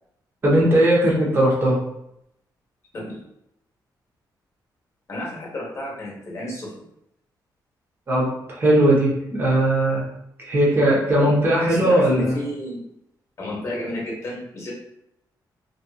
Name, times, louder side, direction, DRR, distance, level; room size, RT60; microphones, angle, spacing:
voice 1, 0.4-1.8 8.1-10.0 10.4-12.4, right 1 dB, 30° right, -5 dB, 0.8 m, -18 dB
voice 2, 5.1-6.9 11.7-12.8 13.4-14.7, left 1 dB, 40° left, -4 dB, 0.9 m, -32 dB
2.6 x 2.5 x 2.3 m, 0.81 s
wide cardioid pair, 165°, 8 cm